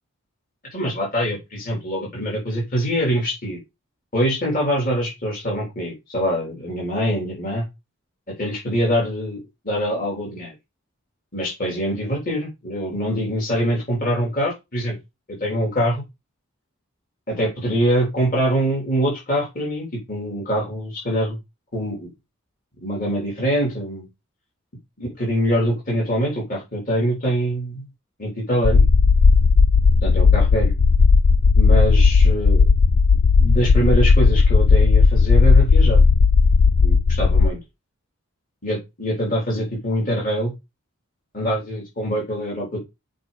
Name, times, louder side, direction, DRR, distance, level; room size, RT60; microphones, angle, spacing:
voice 1, 0.7-3.6 4.1-7.6 8.4-10.5 11.3-15.0 15.3-16.0 17.3-21.4 21.7-22.1 22.8-24.1 25.0-27.9 28.2-28.8 30.0-30.7 31.5-32.7 33.1-36.0 36.8-37.6 38.6-40.5 41.3-42.8, equal, 40° left, -3 dB, 3.3 m, -24 dB
sound 1, 28.6-37.5, left 4 dB, 80° left, 0.5 m, -15 dB
7.7 x 4.9 x 4.1 m, 0.24 s
head